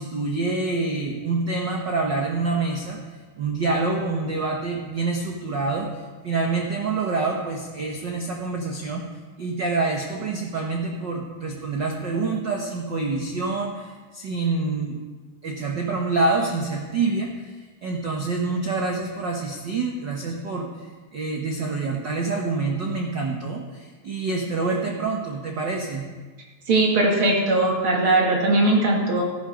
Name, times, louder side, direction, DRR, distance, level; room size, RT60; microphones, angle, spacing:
voice 1, 0.0-3.0 3.4-5.9 6.2-9.0 9.4-15.0 15.4-17.3 17.8-20.7 21.1-26.1, right 3 dB, 70° right, 0 dB, 1.1 m, -26 dB
voice 2, 26.7-29.2, right 2 dB, 45° right, -1 dB, 2.4 m, -19 dB
14.0 x 12.0 x 5.1 m, 1.4 s
omnidirectional pair, 3.8 m